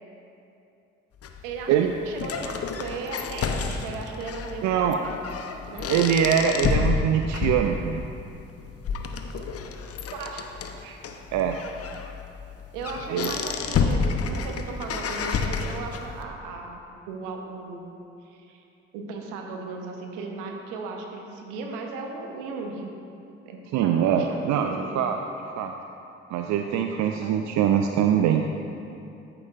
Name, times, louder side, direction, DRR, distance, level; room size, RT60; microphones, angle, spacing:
sound 1, 1.2-16.2, left 5 dB, 50° left, 0.8 m, -30 dB
voice 1, 1.4-5.2 5.6-5.9 10.1-10.5 10.8-11.1 12.7-16.8 17.1-17.8 18.2-18.6 18.9-23.0 23.4-25.0 27.2-27.4, right 3 dB, 80° right, 2 dB, 1.0 m, -36 dB
voice 2, 4.6-5.0 5.9-8.0 11.3-11.6 13.1-13.4 23.7-25.2 25.6-25.7 26.3-28.4, right 8 dB, 65° right, 5 dB, 0.5 m, -23 dB
14.0 x 6.7 x 2.5 m, 2.7 s
hypercardioid pair, 45°, 31 cm